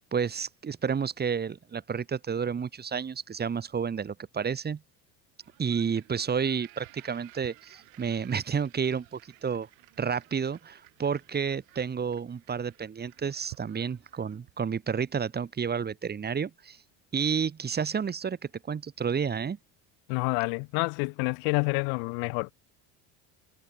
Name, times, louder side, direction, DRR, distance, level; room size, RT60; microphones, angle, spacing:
voice 1, 0.1-4.8 5.6-9.7 10.0-16.8 17.1-18.4 18.6-19.6, right 6 dB, 25° right, 3.2 m, -30 dB
sound 1, 5.4-14.7, right 34 dB, 80° right, 5.4 m, -55 dB
voice 2, 20.1-22.5, left 40 dB or more, 85° left, 1.8 m, -28 dB
cardioid pair, 120°, 35 cm